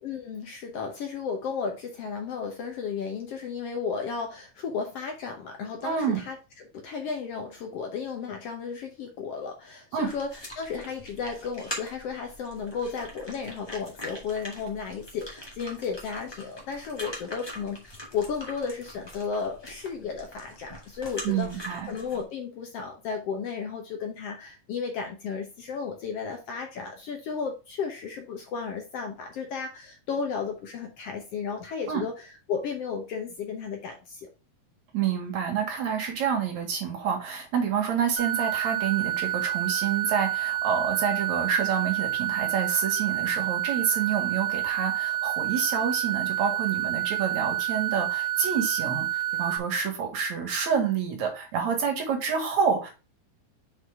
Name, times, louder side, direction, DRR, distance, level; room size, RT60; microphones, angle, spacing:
voice 1, 0.0-6.4 6.7-32.1 32.5-34.3, left 5 dB, 65° left, 3 dB, 1.7 m, -34 dB
voice 2, 5.8-6.2 9.9-10.1 21.2-21.9 31.9-32.1 34.9-52.9, right 7 dB, 65° right, 3 dB, 2.9 m, -28 dB
sound 1, 10.0-22.2, left 1 dB, 10° left, 1.3 m, -43 dB
sound 2, 38.2-49.6, right 13 dB, 90° right, 2.3 m, -29 dB
6.3 x 4.6 x 3.5 m, 0.31 s
omnidirectional pair, 3.5 m